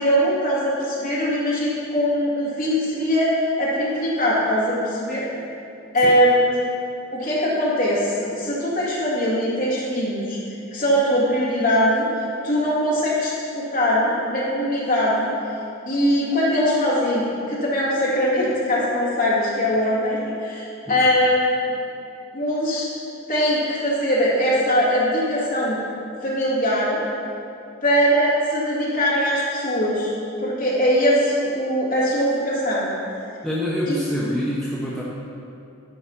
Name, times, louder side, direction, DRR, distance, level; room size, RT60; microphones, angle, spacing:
voice 1, 0.0-5.2 5.9-6.6 7.1-10.4 10.7-15.3 15.9-21.7 22.3-22.9 23.3-25.8 26.2-27.0 27.8-30.1 30.4-32.9 33.9-34.0, equal, 40° left, -7 dB, 2.2 m, -21 dB
voice 2, 33.4-35.0, equal, ahead, -8 dB, 0.8 m, -26 dB
11.0 x 4.7 x 5.8 m, 2.6 s
head